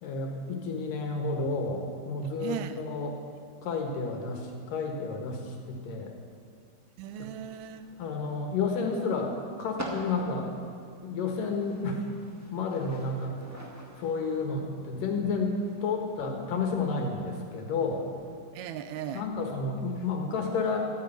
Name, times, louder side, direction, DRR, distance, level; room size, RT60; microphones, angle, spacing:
voice 1, 0.0-3.2 3.6-6.1 8.0-9.3 9.6-10.5 11.0-12.0 12.5-13.4 14.0-15.6 15.8-18.1 19.1-20.9, left 4 dB, 65° left, 2 dB, 2.9 m, -31 dB
voice 2, 2.2-2.8 7.0-7.9 18.5-19.3, right 10 dB, 80° right, 11 dB, 2.5 m, -37 dB
sound 1, 7.0-18.5, equal, 20° right, 0.4 m, -47 dB
13.5 x 10.5 x 9.1 m, 2.2 s
omnidirectional pair, 4.5 m